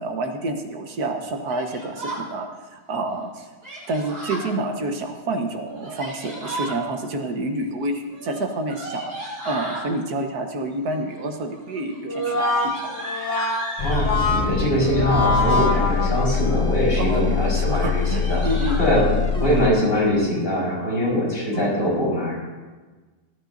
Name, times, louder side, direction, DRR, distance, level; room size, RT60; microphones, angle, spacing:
voice 1, 0.0-3.5 3.9-12.9 16.9-18.8 19.4-19.5 21.5-21.7, right 2 dB, 90° right, 4 dB, 1.7 m, -28 dB
Yell, 1.5-2.3 3.6-4.5 5.7-6.8 8.1-9.9 10.7-11.2 11.5-14.1 15.0-15.6 16.2-16.7 17.1-17.2 17.5-17.6 17.9-18.8, right 1 dB, 60° right, 5.0 m, -35 dB
Brass instrument, 12.1-16.6, left 2 dB, 55° left, 1.5 m, -25 dB
sound 1, 13.8-19.7, left 6 dB, 85° left, 0.3 m, -24 dB
voice 2, 13.8-18.4 18.8-19.1 19.4-22.4, equal, 35° left, -6 dB, 4.6 m, -22 dB
18.5 x 12.5 x 2.6 m, 1.3 s
omnidirectional pair, 1.6 m